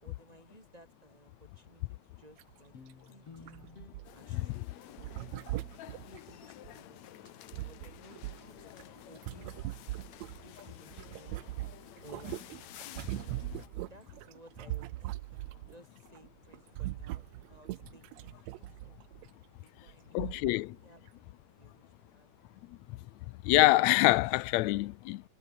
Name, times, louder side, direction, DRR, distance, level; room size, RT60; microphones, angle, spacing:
voice 1, 0.0-3.7 4.1-5.3 6.0-7.4 7.7-9.8 10.4-11.5 12.0-12.7 13.7-15.1 15.7-19.0 19.6-22.3 22.5-22.7, right 1 dB, 15° right, 2.5 m, -58 dB
sound 1, 2.4-2.5 2.8-2.9 3.5-4.4 5.0-6.7 7.3-10.6 10.9-15.7 16.1-16.3 16.5-19.3 19.9-20.0 20.2-20.6 21.1-21.2, right 17 dB, 80° right, 1.6 m, -41 dB
sound 2, 2.7-7.4, left 5 dB, 45° left, 4.1 m, -56 dB
sound 3, 4.0-13.7, left 13 dB, 65° left, 2.2 m, -52 dB
voice 2, 20.1-20.8 22.7-23.0 23.4-25.2, left 19 dB, 80° left, 1.7 m, -26 dB
omnidirectional pair, 3.7 m